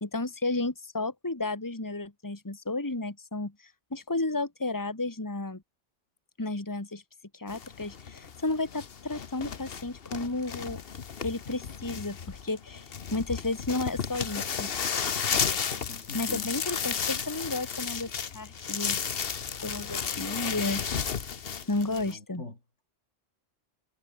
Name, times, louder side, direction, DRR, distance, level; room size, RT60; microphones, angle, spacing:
voice 1, 0.0-5.6 6.4-7.0 7.3-10.8 11.2-14.7 16.1-19.0 19.6-20.8 21.7-22.4, left 2 dB, 15° left, 1.9 m, -32 dB
sound 1, 7.5-22.1, left 7 dB, 55° left, 1.3 m, -33 dB
voice 2, 15.7-16.5 21.9-22.6, left 2 dB, 80° left, 5.0 m, -43 dB
omnidirectional pair, 1.2 m